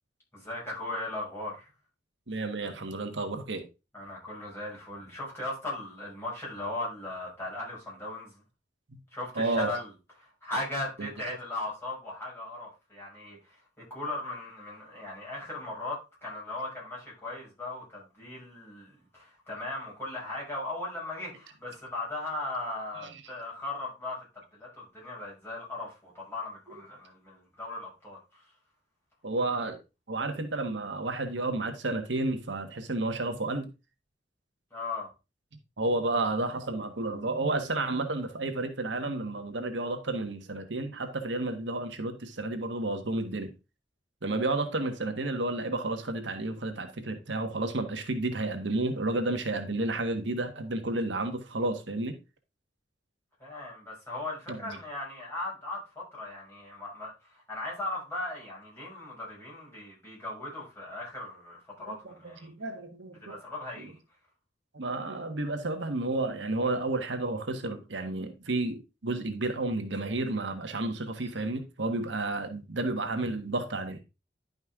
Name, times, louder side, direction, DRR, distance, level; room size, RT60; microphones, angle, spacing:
voice 1, 0.3-1.7 3.9-8.3 9.1-9.9 10.2-24.2 24.5-28.5 34.7-35.1 53.4-62.5 63.2-64.0, left 2 dB, 15° left, 6.3 m, -38 dB
voice 2, 2.3-3.6 9.4-9.7 11.0-11.4 23.1-23.2 29.2-29.8 30.1-33.7 35.8-43.5 44.2-52.1 54.5-54.8 61.9-63.4 64.7-74.0, right 2 dB, 90° right, 1.4 m, -31 dB
11.0 x 5.3 x 3.6 m
head